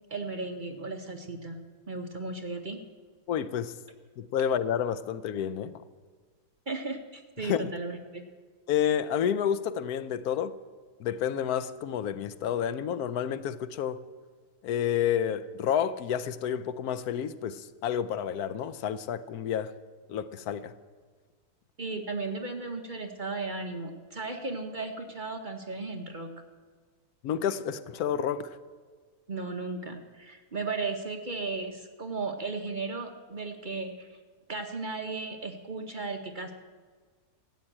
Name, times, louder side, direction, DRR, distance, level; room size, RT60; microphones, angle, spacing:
voice 1, 0.1-1.6 1.9-2.8 6.7-8.2 21.8-26.3 29.3-34.2 34.5-36.5, right 3 dB, 40° right, 0.9 m, -35 dB
voice 2, 3.3-3.8 4.2-5.8 7.4-7.7 8.7-10.6 11.0-14.0 14.6-19.7 20.1-20.7 27.2-28.6, left 9 dB, 75° left, 1.1 m, -30 dB
14.5 x 8.0 x 8.7 m
omnidirectional pair, 1.7 m